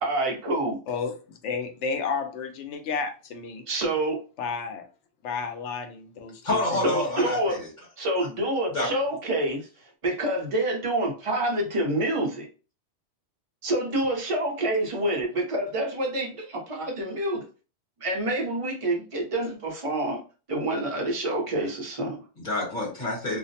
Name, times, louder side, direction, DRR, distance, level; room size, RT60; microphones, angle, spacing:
voice 1, 0.0-0.8 3.7-4.2 6.8-7.6 8.0-9.7 10.0-12.5 13.6-17.4 18.0-20.2 20.5-22.2, right 1 dB, 35° right, 0.7 m, -27 dB
voice 2, 1.4-3.6 4.4-4.8 5.2-6.4 6.7-6.8, left 5 dB, 80° left, 0.9 m, -31 dB
voice 3, 6.4-7.7 8.7-8.9 22.4-23.4, left 2 dB, 40° left, 1.3 m, -28 dB
2.5 x 2.1 x 2.7 m
omnidirectional pair, 1.2 m